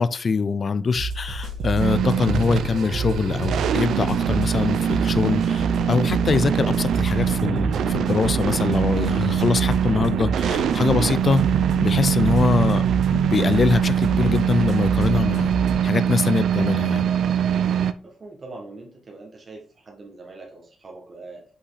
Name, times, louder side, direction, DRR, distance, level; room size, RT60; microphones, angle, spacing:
voice 1, 0.0-11.4 11.8-12.8 13.1-15.5 15.8-17.1, left 4 dB, 35° left, 15 dB, 0.4 m, -23 dB
sound 1, 0.9-15.7, right 3 dB, 55° right, 1.5 m, -29 dB
sound 2, 1.8-17.9, right 9 dB, 80° right, 0.4 m, -23 dB
voice 2, 18.0-21.4, right 3 dB, 30° right, 0 dB, 1.6 m, -42 dB
5.6 x 5.5 x 4.0 m, 0.41 s
wide cardioid pair, 175°, 0 cm